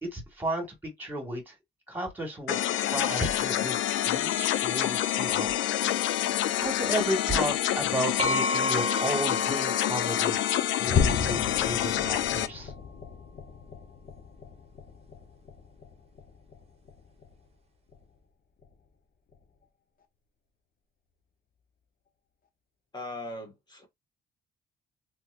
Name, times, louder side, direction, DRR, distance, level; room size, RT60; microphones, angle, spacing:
voice 1, 0.0-1.5 1.9-2.6 2.9-3.8 4.0-5.6 6.0-6.1 6.6-10.4 10.8-12.7, right 1 dB, 10° right, 2.1 m, -33 dB
sound 1, 2.5-12.5, left 12 dB, 70° left, 0.4 m, -27 dB
sound 2, 8.2-11.9, left 1 dB, 30° right, 1.0 m, -33 dB
sound 3, 10.9-17.5 17.9-18.2 18.6-18.7 19.3-19.4, left 6 dB, 45° left, 0.9 m, -34 dB
voice 2, 22.9-23.9, left 2 dB, 20° left, 1.6 m, -39 dB
3.4 x 3.1 x 2.5 m
cardioid pair, 90°, 20 cm